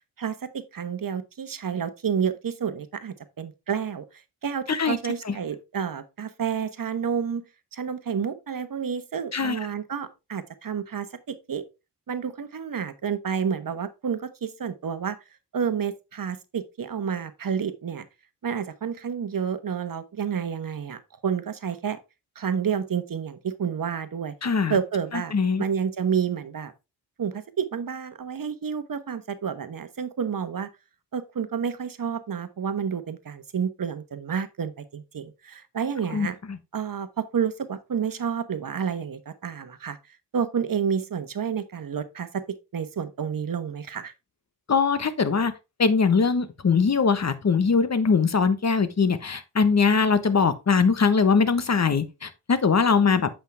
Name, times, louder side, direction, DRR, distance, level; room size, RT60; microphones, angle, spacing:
voice 1, 0.2-4.0 4.4-7.4 7.7-11.6 12.1-15.2 15.5-18.0 18.4-22.0 22.4-24.3 24.7-25.3 25.6-26.7 27.2-30.7 31.1-36.4 36.7-40.0 40.3-44.1, right 7 dB, 50° right, 1.1 m, -29 dB
voice 2, 24.4-24.8 25.1-25.6 36.1-36.6 44.7-45.5 45.8-53.3, left 5 dB, 40° left, 1.2 m, -22 dB
8.3 x 5.7 x 3.4 m
cardioid pair, 60°, 41 cm